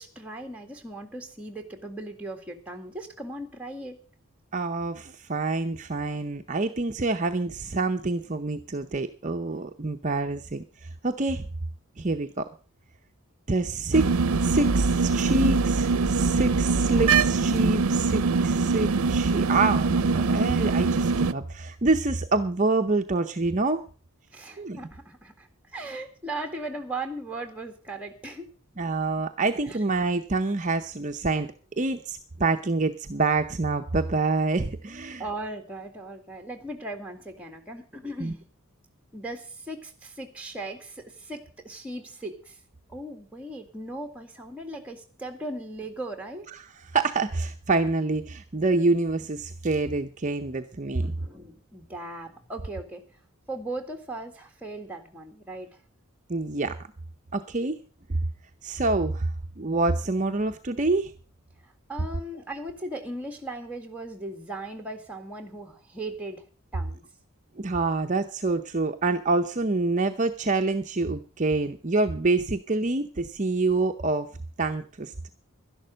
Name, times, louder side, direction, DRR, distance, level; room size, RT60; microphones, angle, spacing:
voice 1, 0.0-4.0 24.3-28.5 29.7-29.8 35.2-38.4 39.1-42.6 42.9-46.5 51.0-53.0 53.5-55.7 61.9-66.4 66.7-67.1, right 2 dB, 5° right, 4 dB, 1.9 m, -38 dB
voice 2, 4.5-11.5 12.0-12.5 13.5-14.1 14.4-23.8 24.6-24.8 28.8-35.3 38.2-38.3 46.5-51.1 56.3-56.8 57.3-57.8 58.6-61.1 67.6-74.3 74.6-75.3, right 3 dB, 35° right, 6 dB, 0.7 m, -27 dB
sound 1, 13.9-21.3, right 4 dB, 85° right, 0.6 m, -23 dB
12.0 x 11.0 x 6.4 m, 0.39 s
head